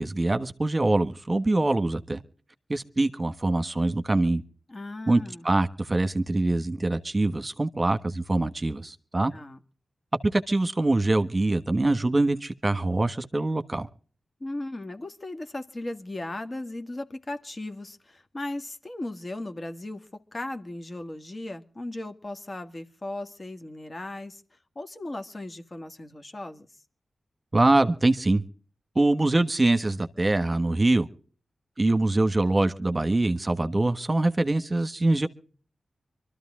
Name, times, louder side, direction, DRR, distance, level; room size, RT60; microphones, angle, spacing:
voice 1, 0.0-2.2 2.7-4.4 5.1-9.3 10.2-13.9 27.5-28.4 28.9-31.1 31.8-35.3, right 2 dB, 30° right, 1.3 m, -24 dB
voice 2, 4.7-5.5 9.3-9.6 14.4-24.4 24.8-26.7, left 2 dB, 40° left, 1.9 m, -37 dB
24.0 x 13.5 x 3.7 m
cardioid pair, 50°, 0 cm